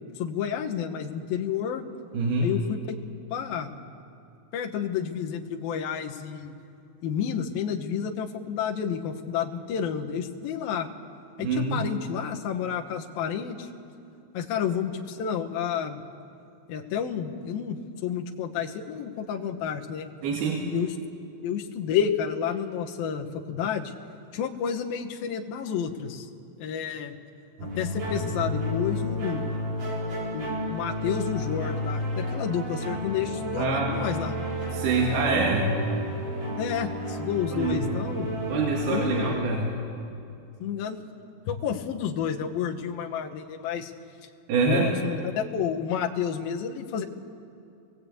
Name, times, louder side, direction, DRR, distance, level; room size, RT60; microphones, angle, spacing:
voice 1, 0.2-1.8 2.4-2.8 3.3-3.7 4.5-6.5 7.0-10.9 11.4-13.7 14.3-16.0 16.7-20.1 20.7-20.9 21.4-23.9 24.3-26.3 26.6-27.2 27.6-29.5 30.3-34.3 36.6-38.3 38.9-39.3 40.6-41.1 41.5-43.9 44.7-47.0, left 8 dB, 70° left, 2 dB, 2.8 m, -30 dB
voice 2, 2.1-2.5 11.4-11.9 20.2-20.7 33.6-34.1 34.7-35.7 37.5-37.8 38.5-39.7 44.5-44.9, right 3 dB, 70° right, -1 dB, 3.9 m, -25 dB
sound 1, 27.6-39.3, equal, 40° right, 5.6 m, -31 dB
25.5 x 20.0 x 8.5 m, 2.8 s
omnidirectional pair, 4.7 m